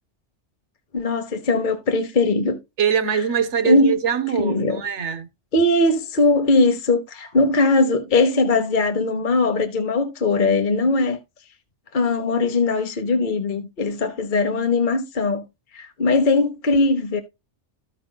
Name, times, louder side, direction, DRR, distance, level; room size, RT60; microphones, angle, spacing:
voice 1, 0.9-2.6 3.1-3.2 3.6-3.9 4.4-4.8 5.5-11.2 11.9-15.4 15.7-17.2, left 3 dB, 45° left, 1.1 m, -20 dB
voice 2, 2.8-5.3, right 7 dB, 75° right, 1.1 m, -22 dB
14.5 x 5.1 x 2.2 m
omnidirectional pair, 1.2 m